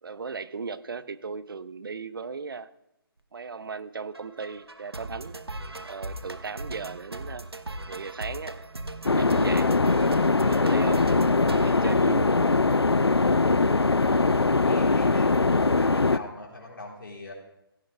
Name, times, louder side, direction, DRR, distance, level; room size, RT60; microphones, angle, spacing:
voice 1, 0.0-2.7 3.3-5.4 5.8-7.4 7.9-8.6 9.0-9.7 10.4-11.1 11.4-12.4, right 5 dB, 60° right, 15 dB, 0.7 m, -37 dB
sound 1, 4.1-12.7, right 1 dB, 85° right, 1.0 m, -39 dB
sound 2, 9.1-16.2, left 3 dB, 90° left, 0.5 m, -21 dB
voice 2, 14.0-15.4 15.8-17.3, left 2 dB, 60° left, -1 dB, 4.0 m, -42 dB
16.5 x 14.5 x 3.4 m, 0.85 s
figure-of-eight pair, 140°, 13 cm